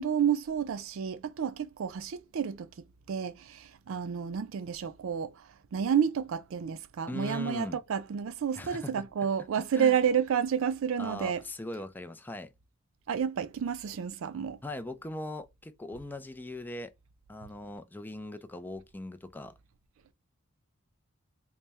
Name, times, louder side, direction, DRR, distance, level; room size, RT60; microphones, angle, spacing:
voice 1, 0.0-2.7 3.1-5.3 5.7-11.4 13.1-14.6, right 7 dB, 70° right, 0.4 m, -30 dB
voice 2, 7.1-7.8 8.6-9.0 9.7-10.0 11.0-12.5 14.6-16.9 17.3-19.5, left 1 dB, 10° left, 0.3 m, -40 dB
4.0 x 2.1 x 3.4 m
head